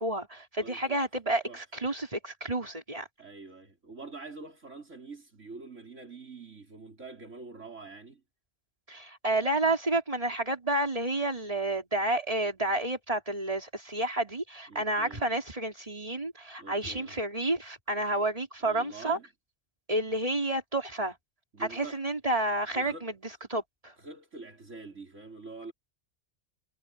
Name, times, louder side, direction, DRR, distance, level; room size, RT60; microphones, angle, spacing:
voice 1, 0.0-3.1 8.9-19.2 19.9-21.1 21.6-23.1 23.5-23.9, right 1 dB, 30° right, 4.0 m, -30 dB
voice 2, 0.6-1.1 1.4-1.6 3.2-8.2 14.7-15.3 16.6-17.2 18.6-19.3 21.5-22.0 22.7-23.1 24.0-25.7, right 3 dB, 85° right, 5.1 m, -45 dB
omnidirectional pair, 1.2 m